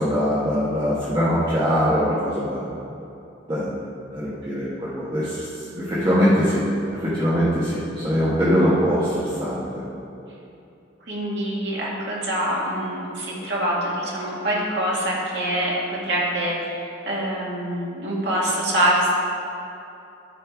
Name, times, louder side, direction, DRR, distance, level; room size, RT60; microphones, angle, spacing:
voice 1, 0.0-2.7 3.5-3.8 4.1-6.6 7.0-9.8, equal, 25° right, -10 dB, 1.4 m, -22 dB
voice 2, 11.1-19.1, right 1 dB, 65° right, -5 dB, 2.1 m, -25 dB
13.0 x 4.4 x 4.7 m, 2.8 s
head